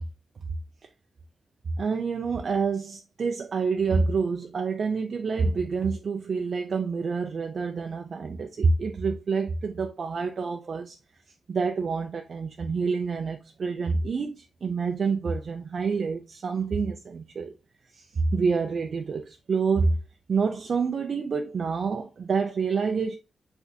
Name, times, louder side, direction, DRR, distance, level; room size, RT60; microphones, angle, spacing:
voice 1, 1.8-11.0 11.5-17.5 17.9-18.0 18.3-20.0 20.3-23.2, right 4 dB, 55° right, 0.4 m, -27 dB
5.8 x 3.3 x 2.7 m
wide cardioid pair, 110°, 0 cm